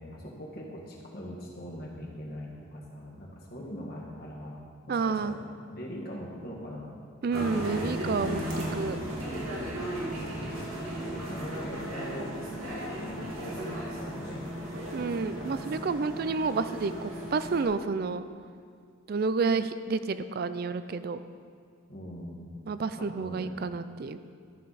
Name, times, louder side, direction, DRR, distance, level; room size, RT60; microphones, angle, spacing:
voice 1, 0.0-4.6 4.9-5.4 5.7-6.9 9.9-14.5 21.9-22.5 23.0-23.5, equal, 45° left, -3 dB, 1.6 m, -41 dB
voice 2, 4.9-5.3 7.2-8.4 8.7-9.0 14.9-18.2 19.1-21.2 22.7-24.2, right 4 dB, 45° right, 12 dB, 0.3 m, -30 dB
sound 1, 7.3-17.6, right 1 dB, 75° right, 2.1 m, -36 dB
12.5 x 6.6 x 4.1 m, 2.1 s
head